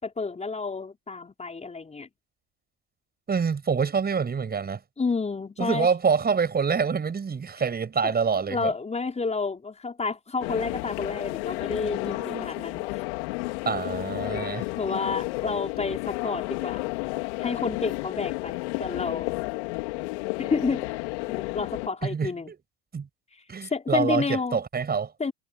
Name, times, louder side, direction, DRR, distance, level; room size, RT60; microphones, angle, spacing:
voice 1, 0.0-2.1 5.0-5.9 8.0-8.1 8.5-12.9 14.8-16.8 17.4-19.3 20.4-20.9 21.4-22.5 23.3-24.6 25.2-25.3, left 4 dB, 20° left, 5.4 m, -30 dB
voice 2, 3.3-4.8 5.6-8.7 12.1-12.6 13.7-14.6 22.0-22.6 22.9-23.1 23.5-25.1, right 6 dB, 25° right, 7.8 m, -26 dB
sound 1, 10.4-21.9, left 25 dB, 70° left, 4.1 m, -32 dB
hypercardioid pair, 85°, 35 cm